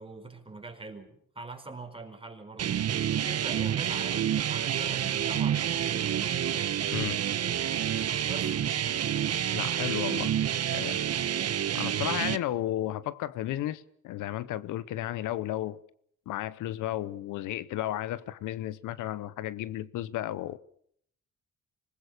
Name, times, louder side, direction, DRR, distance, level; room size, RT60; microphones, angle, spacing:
voice 1, 0.0-2.8 3.2-6.4 8.2-8.5, right 3 dB, 20° right, 4.7 m, -43 dB
sound 1, 2.6-12.4, right 10 dB, 55° right, 1.1 m, -28 dB
voice 2, 9.5-10.3 10.7-11.0 11.7-15.8 16.3-20.6, left 13 dB, 90° left, 1.0 m, -33 dB
25.5 x 20.0 x 6.6 m
cardioid pair, 90°, 30 cm